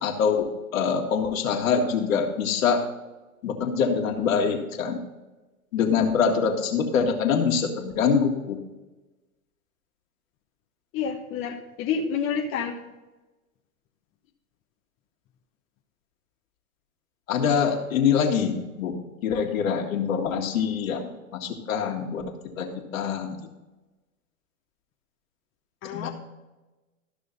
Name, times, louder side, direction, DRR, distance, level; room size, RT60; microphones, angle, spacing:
voice 1, 0.0-2.8 3.4-5.0 5.7-8.6 17.3-19.0 19.2-22.2 22.6-22.7 22.9-23.4 25.9-26.1, left 6 dB, 65° left, 3 dB, 2.0 m, -24 dB
voice 2, 10.9-12.8 25.8-26.1, left 6 dB, 30° left, 1 dB, 1.1 m, -29 dB
13.5 x 6.2 x 4.1 m, 1.1 s
hypercardioid pair, 110°, 44 cm